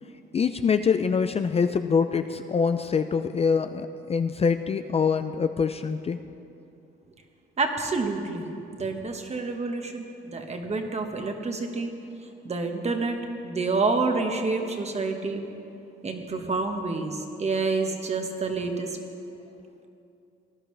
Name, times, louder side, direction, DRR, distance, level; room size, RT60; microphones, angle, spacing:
voice 1, 0.3-6.2, left 6 dB, 30° left, 9 dB, 0.4 m, -24 dB
voice 2, 7.6-8.4 8.7-10.0 10.3-11.9 12.4-13.2 13.4-15.4 16.0-19.0, right 3 dB, 35° right, 4 dB, 1.4 m, -28 dB
18.5 x 11.0 x 3.3 m, 2.7 s
cardioid pair, 90°, 20 cm